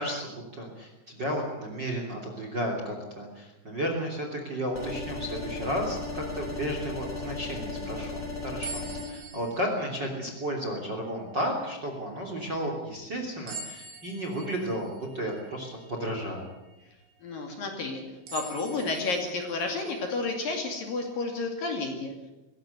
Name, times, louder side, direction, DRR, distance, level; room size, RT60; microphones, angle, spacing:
voice 1, 0.0-16.5, equal, 25° right, 3 dB, 2.9 m, -33 dB
sound 1, 4.7-9.0, left 2 dB, 20° left, 6.6 m, -36 dB
sound 2, 8.6-11.0 11.6-11.7 13.5-16.8 17.4-17.5 18.3-21.3, right 4 dB, 90° right, 5.8 m, -45 dB
voice 2, 17.2-22.1, left 3 dB, 50° left, 3 dB, 3.8 m, -31 dB
21.5 x 17.0 x 8.1 m, 1.0 s
omnidirectional pair, 5.6 m